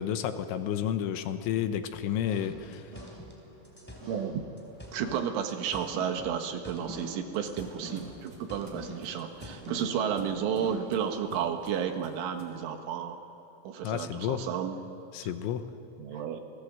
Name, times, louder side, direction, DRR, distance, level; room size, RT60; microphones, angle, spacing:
voice 1, 0.0-2.9 13.8-14.5 15.1-15.7, left 10 dB, 80° left, 9 dB, 3.4 m, -31 dB
sound 1, 1.9-10.7, right 1 dB, 55° right, 9.2 m, -47 dB
sound 2, 2.5-5.2 5.5-7.1 7.3-9.7, left 1 dB, ahead, 3.5 m, -48 dB
voice 2, 4.9-13.2 13.6-14.8 15.2-15.3 16.0-16.4, right 8 dB, 80° right, 5 dB, 4.1 m, -32 dB
sound 3, 6.6-12.6, right 1 dB, 30° right, 4.1 m, -51 dB
28.5 x 20.5 x 7.8 m, 2.7 s
omnidirectional pair, 5.6 m